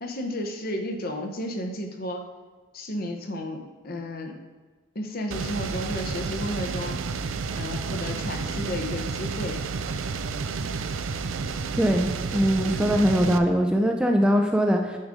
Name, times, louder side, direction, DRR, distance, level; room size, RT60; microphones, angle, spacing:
voice 1, 0.0-2.2 2.7-4.4 4.9-7.2 7.6-9.6 12.8-13.1, left 1 dB, 50° left, 3 dB, 0.9 m, -33 dB
sound 1, 5.3-13.4, right 4 dB, 85° right, 0.5 m, -31 dB
voice 2, 11.8-15.0, equal, 5° right, 3 dB, 0.4 m, -22 dB
9.5 x 5.1 x 3.7 m, 1.4 s
head